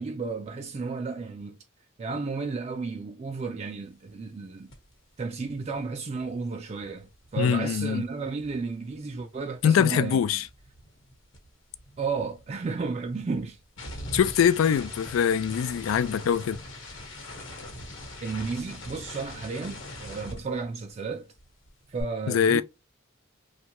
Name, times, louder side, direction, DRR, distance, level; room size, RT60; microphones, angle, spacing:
voice 1, 0.0-1.6 2.0-4.7 5.2-10.4 12.0-13.6 18.2-21.3 21.9-22.6, right 4 dB, 30° right, 0.3 m, -33 dB
sound 1, 4.7-4.9 5.2-9.6 9.8-21.1 21.4-22.0, left 1 dB, 65° left, 1.0 m, -43 dB
voice 2, 7.4-8.0 9.6-10.5 14.1-16.6 22.3-22.6, left 8 dB, 85° left, 0.3 m, -23 dB
3.0 x 2.3 x 2.8 m
head